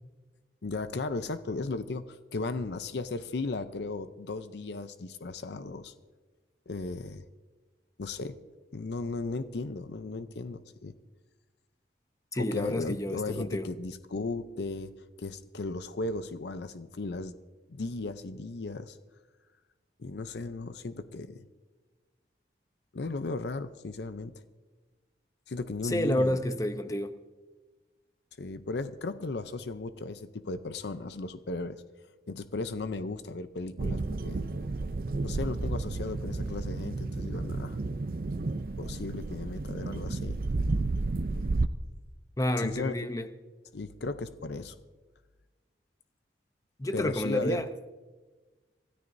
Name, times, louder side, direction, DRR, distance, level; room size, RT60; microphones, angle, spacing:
voice 1, 0.6-5.9 6.7-7.2 8.0-8.4 8.7-10.9 12.3-14.9 15.2-17.3 17.7-19.0 20.0-21.5 22.9-24.3 25.5-26.4 28.4-31.8 32.3-34.4 35.2-37.8 38.8-40.4 42.6-42.9 43.7-44.7 46.9-47.6, left 3 dB, 75° left, 0.6 m, -36 dB
voice 2, 12.3-13.7 25.8-27.1 42.4-43.3 46.8-47.7, left 1 dB, 20° left, 0.6 m, -29 dB
sound 1, 33.8-41.7, right 3 dB, 55° right, 0.5 m, -32 dB
25.0 x 13.5 x 2.7 m
head